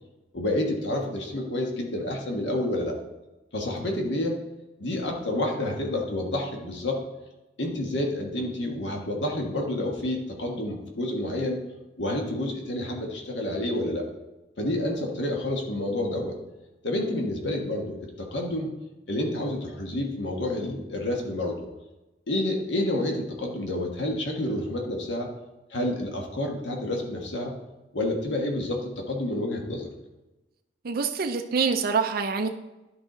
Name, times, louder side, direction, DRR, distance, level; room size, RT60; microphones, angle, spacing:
voice 1, 0.3-2.9 3.5-4.4 4.8-7.0 7.6-11.6 12.0-14.1 14.6-16.3 16.8-18.7 19.1-21.7 22.3-25.3 25.7-27.5 27.9-29.9, left 1 dB, 75° left, 1 dB, 1.4 m, -29 dB
voice 2, 30.8-32.5, right 5 dB, 55° right, 4 dB, 0.5 m, -25 dB
11.0 x 4.8 x 3.9 m, 1.0 s
head